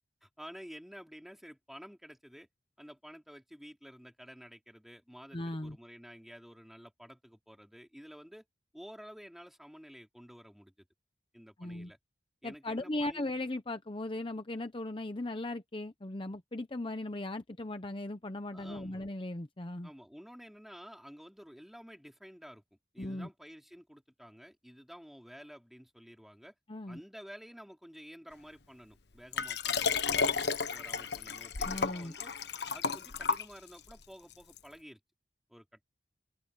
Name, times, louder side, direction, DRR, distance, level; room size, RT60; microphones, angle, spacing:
voice 1, 0.2-2.5 2.8-8.5 8.7-10.9 11.3-12.0 12.4-13.3 18.5-19.0 19.8-26.5 26.9-32.3 32.7-35.0 35.5-35.8, equal, ahead, 3.7 m, -51 dB
voice 2, 5.3-5.8 11.6-11.9 12.4-19.9 23.0-23.3 26.7-27.0 31.6-32.1, left 2 dB, 30° left, 0.8 m, -38 dB
Liquid, 29.3-33.9 34.6-34.7, left 5 dB, 60° left, 1.3 m, -32 dB
open air
head